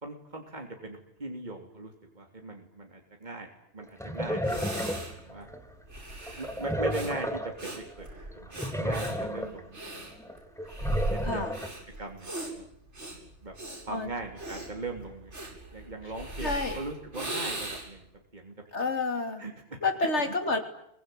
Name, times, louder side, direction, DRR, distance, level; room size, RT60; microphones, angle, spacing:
voice 1, 0.0-3.5 3.7-5.5 6.3-8.1 8.3-10.1 11.3-11.4 12.0-12.7 13.4-13.5 13.8-18.1 18.3-18.5 19.4-19.8 20.3-20.4, right 2 dB, 40° right, 2 dB, 3.4 m, -40 dB
sound 1, 3.8-5.7 6.2-7.7 8.0-8.1 8.3-9.7 10.1-11.7, equal, ahead, 2.0 m, -33 dB
Breathing, 4.0-4.1 4.4-18.1, right 2 dB, 75° right, 8.3 m, -38 dB
voice 2, 16.4-16.8 18.7-19.4 19.8-20.6, left 3 dB, 75° left, 6 dB, 3.4 m, -29 dB
26.5 x 24.0 x 9.3 m, 0.77 s
omnidirectional pair, 1.2 m